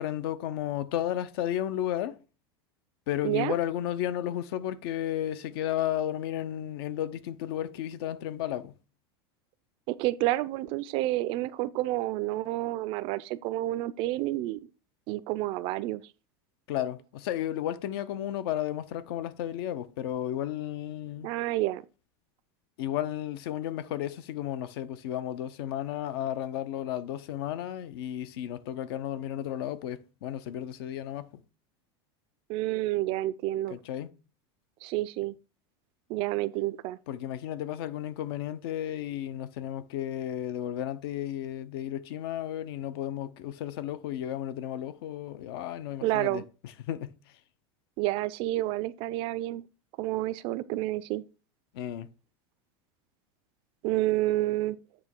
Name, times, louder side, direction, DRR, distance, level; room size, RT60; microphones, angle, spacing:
voice 1, 0.0-2.2 3.1-8.7 16.7-21.3 22.8-31.3 33.7-34.1 37.1-46.4 46.9-47.1 51.7-52.1, left 11 dB, 75° left, 0.7 m, -33 dB
voice 2, 3.2-3.6 9.9-14.6 15.1-16.0 21.2-21.8 32.5-33.8 34.8-35.3 36.1-37.0 46.0-46.4 48.0-49.6 50.0-51.2 53.8-54.8, right 16 dB, 45° right, 0.4 m, -29 dB
8.7 x 3.1 x 4.4 m
supercardioid pair, 150°, 13 cm